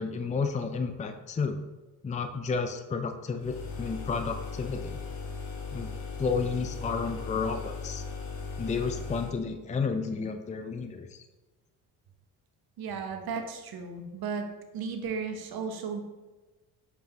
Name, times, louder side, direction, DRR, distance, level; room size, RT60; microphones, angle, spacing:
voice 1, 0.0-1.6 2.0-5.0 5.7-5.9 6.2-8.0 8.6-11.2, left 5 dB, 15° left, 7 dB, 0.6 m, -31 dB
sound 1, 3.4-9.4, left 4 dB, 85° left, 1.1 m, -38 dB
voice 2, 12.8-14.4 14.7-16.0, right 5 dB, 50° right, 5 dB, 1.2 m, -34 dB
6.8 x 5.3 x 3.0 m, 1.2 s
hypercardioid pair, 55°, 48 cm